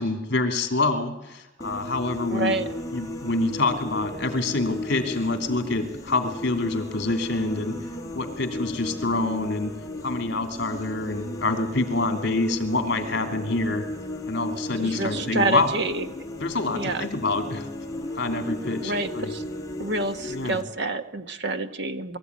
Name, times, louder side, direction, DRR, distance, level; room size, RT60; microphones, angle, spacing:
voice 1, 0.0-2.6 2.9-7.8 8.1-9.8 10.0-13.9 14.3-15.7 16.4-17.7 18.1-19.3 20.3-20.6, left 2 dB, 55° left, 6 dB, 2.9 m, -26 dB
sound 1, 1.6-20.6, left 2 dB, 15° left, 2.5 m, -35 dB
voice 2, 2.3-2.7 14.8-16.1 16.7-17.1 18.8-19.4 19.8-22.2, right 2 dB, 55° right, 9 dB, 1.3 m, -28 dB
22.5 x 14.0 x 9.6 m, 1.0 s
head